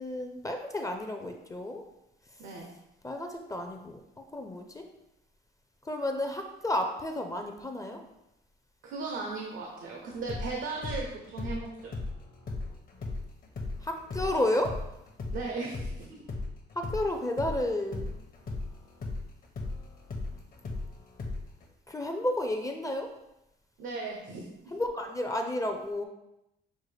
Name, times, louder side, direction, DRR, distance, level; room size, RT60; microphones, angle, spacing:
voice 1, 0.0-1.8 3.0-4.0 4.3-4.9 5.9-8.0 13.8-14.8 16.8-18.1 21.9-23.1 24.7-26.0, left 1 dB, 15° left, 4 dB, 0.4 m, -31 dB
voice 2, 2.4-2.7 8.8-11.9 15.3-16.3 23.8-24.7, right 3 dB, 80° right, 0 dB, 0.7 m, -37 dB
sound 1, 10.1-17.1 17.4-21.6, left 3 dB, 45° left, 0.8 m, -37 dB
6.2 x 2.1 x 3.3 m, 0.88 s
cardioid pair, 90°, 20 cm